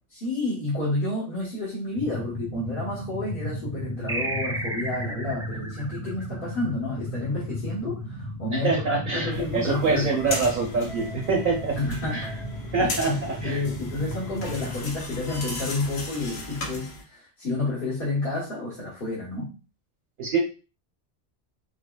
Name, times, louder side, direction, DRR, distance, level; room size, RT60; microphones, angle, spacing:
voice 1, 0.1-10.2 11.8-12.3 12.8-19.5, left 2 dB, 55° left, -8 dB, 1.5 m, -30 dB
sound 1, 2.0-14.8, equal, 35° left, 1.0 m, -36 dB
sound 2, 4.1-7.1, right 2 dB, 5° right, 0.5 m, -33 dB
voice 2, 8.5-11.8 12.1-12.2 12.7-13.6 20.2-20.4, right 4 dB, 55° right, -1 dB, 0.9 m, -25 dB
sound 3, 9.3-17.0, left 2 dB, 80° left, 1.1 m, -36 dB
4.9 x 2.1 x 2.3 m, 0.32 s
omnidirectional pair, 1.1 m